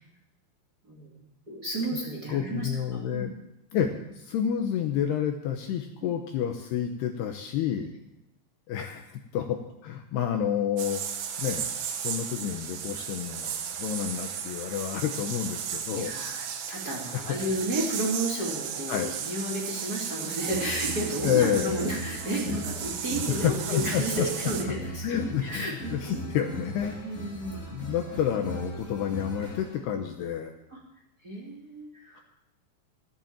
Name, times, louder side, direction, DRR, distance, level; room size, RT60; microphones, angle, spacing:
voice 1, 1.5-3.3 6.0-6.1 15.9-26.2 27.0-27.7 30.7-30.8 31.2-32.2, right 1 dB, 25° right, -4 dB, 2.2 m, -32 dB
voice 2, 2.3-3.3 3.7-7.9 8.7-11.0 11.4-11.7 12.0-16.1 18.9-19.1 21.2-21.9 23.3-24.3 25.0-27.0 27.7-30.5 32.2-32.3, left 9 dB, 75° left, 5 dB, 2.6 m, -29 dB
sound 1, 10.8-24.6, right 8 dB, 70° right, 3.5 m, -35 dB
sound 2, 20.4-29.8, equal, 20° left, 2.6 m, -38 dB
13.5 x 10.0 x 7.3 m, 0.85 s
omnidirectional pair, 5.4 m